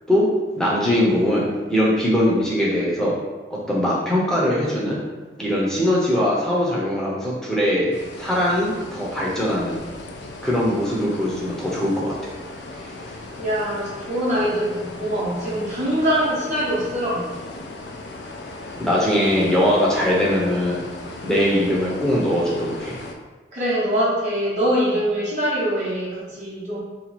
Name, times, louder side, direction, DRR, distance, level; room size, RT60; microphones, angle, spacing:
voice 1, 0.6-3.1 3.5-5.0 5.4-7.9 8.2-9.8 10.4-12.1 18.8-20.8 21.2-23.0, left 1 dB, 5° left, -6 dB, 0.7 m, -21 dB
sound 1, 7.9-23.1, left 2 dB, 85° left, 0.4 m, -37 dB
voice 2, 13.4-17.4 23.5-26.8, equal, 40° right, -8 dB, 0.9 m, -23 dB
2.9 x 2.4 x 4.2 m, 1.3 s
head